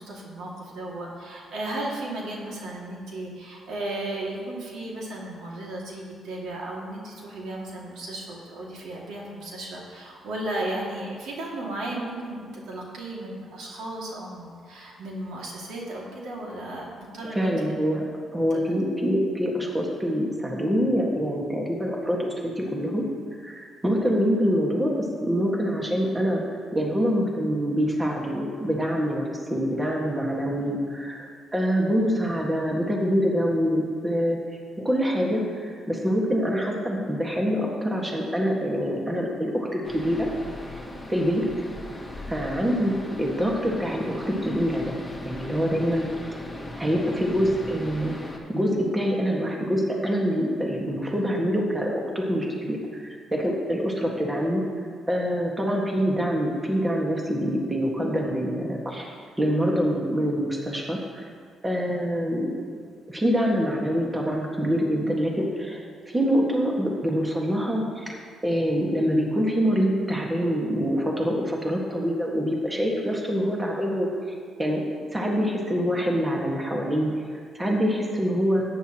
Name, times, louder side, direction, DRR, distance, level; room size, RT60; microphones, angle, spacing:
voice 1, 0.0-17.7 18.5-18.7, right 1 dB, 80° right, -3 dB, 2.2 m, -35 dB
voice 2, 17.2-18.0 18.3-23.0 23.4-34.4 34.8-40.3 41.1-41.6 42.3-45.0 45.2-46.0 46.8-48.1 48.5-53.0 53.3-54.6 55.1-61.2 61.6-62.5 63.1-68.1 68.4-74.1 74.6-74.8 75.1-78.6, equal, 15° right, -1 dB, 1.7 m, -25 dB
sound 1, 39.8-48.4, left 1 dB, 10° left, 1.7 m, -39 dB
14.0 x 9.4 x 3.0 m, 2.1 s
cardioid pair, 90°, 0 cm